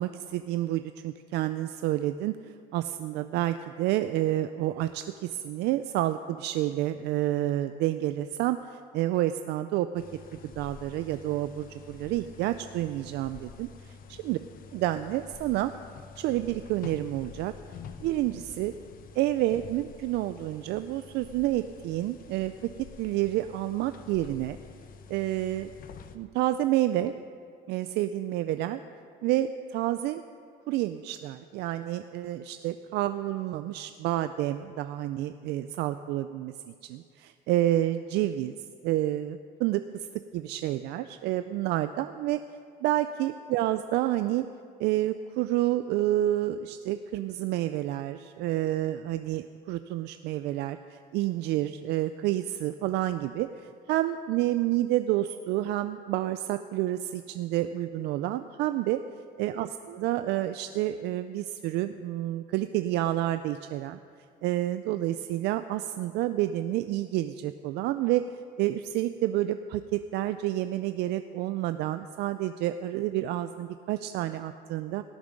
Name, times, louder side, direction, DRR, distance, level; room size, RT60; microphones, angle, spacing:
voice 1, 0.0-2.4 2.7-10.0 10.4-14.4 14.7-15.7 16.2-17.5 18.0-18.7 19.2-22.5 23.0-24.6 25.1-25.7 26.2-27.1 27.7-28.8 29.2-30.2 30.7-38.5 38.8-40.1 40.3-42.4 42.8-44.5 44.8-53.5 53.9-59.0 59.4-64.0 64.4-68.2 68.6-75.0, right 14 dB, 85° right, 10 dB, 0.4 m, -29 dB
sound 1, 9.9-26.2, left 6 dB, 55° left, 0.8 m, -48 dB
18.0 x 6.9 x 5.2 m, 2.2 s
cardioid pair, 110°, 17 cm